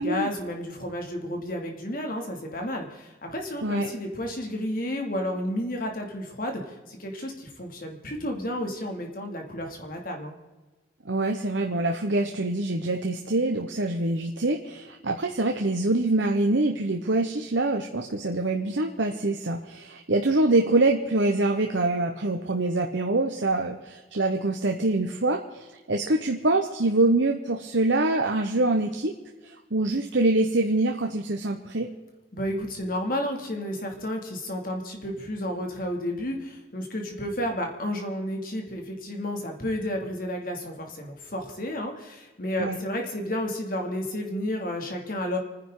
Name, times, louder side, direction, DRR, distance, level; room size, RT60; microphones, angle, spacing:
voice 1, 0.0-10.3 32.3-45.4, left 1 dB, 50° left, 2 dB, 2.6 m, -31 dB
voice 2, 11.0-29.1 29.4-31.9 42.6-42.8, right 2 dB, 80° right, 3 dB, 1.1 m, -25 dB
29.5 x 10.0 x 3.9 m, 1.2 s
head